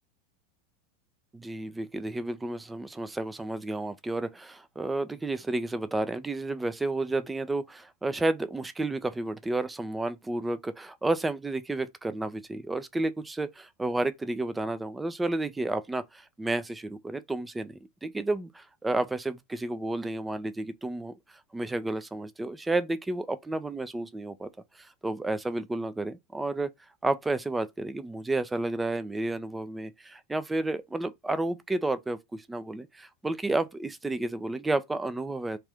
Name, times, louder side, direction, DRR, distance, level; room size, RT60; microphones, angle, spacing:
voice 1, 1.3-21.1 21.5-24.5 24.8-26.7 27.0-35.6, right 2 dB, 10° right, 0.5 m, -31 dB
3.3 x 2.6 x 3.4 m
figure-of-eight pair, 85°, 0 cm